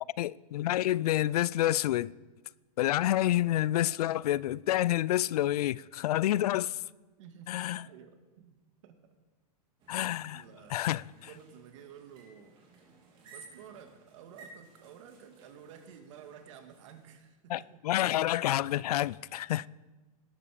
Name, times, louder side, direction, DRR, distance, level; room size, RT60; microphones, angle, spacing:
voice 1, 0.2-2.1 2.8-6.8 7.5-7.8 9.9-10.4 10.7-11.0 17.5-19.7, left 14 dB, 70° left, 0.4 m, -28 dB
voice 2, 7.2-9.2 9.9-10.8 11.1-12.6 13.2-17.8, right 8 dB, 50° right, 1.9 m, -52 dB
sound 1, 9.8-17.1, right 3 dB, 25° right, 3.2 m, -57 dB
18.0 x 13.0 x 4.9 m
supercardioid pair, 170°, 20 cm